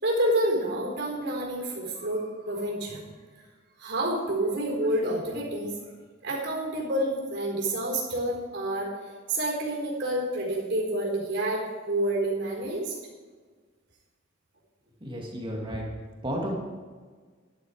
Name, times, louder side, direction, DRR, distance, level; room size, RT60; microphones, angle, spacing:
voice 1, 0.0-3.1 3.8-5.7 6.2-8.9 9.3-13.0, right 1 dB, 60° right, -1 dB, 4.2 m, -28 dB
voice 2, 15.0-15.8 16.2-16.6, equal, 25° right, -1 dB, 2.3 m, -32 dB
12.5 x 11.0 x 5.1 m, 1.5 s
head